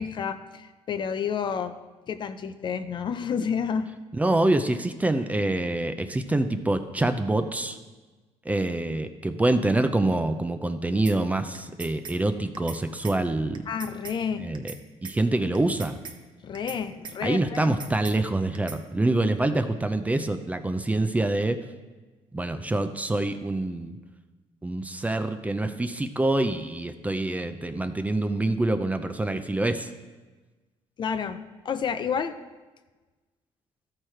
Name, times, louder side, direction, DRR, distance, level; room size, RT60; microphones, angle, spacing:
voice 1, 0.0-1.8 2.1-3.9 13.7-14.5 16.4-17.8 31.0-32.3, left 7 dB, 40° left, 10 dB, 0.5 m, -30 dB
voice 2, 4.1-7.8 8.4-13.6 14.4-14.7 15.0-16.0 17.2-21.6 22.3-24.0 24.6-29.9, right 2 dB, 10° right, 9 dB, 0.5 m, -26 dB
sound 1, 11.1-11.2 11.5-12.2 12.5-12.8 13.0-13.2 13.5-14.2 14.5-14.8 15.0-15.2 15.5-16.2 16.5-16.8 17.0-17.2 17.5-18.2 18.5-18.8, right 5 dB, 40° right, 0.9 m, -40 dB
13.5 x 4.8 x 4.4 m, 1.3 s
cardioid pair, 120°, 12 cm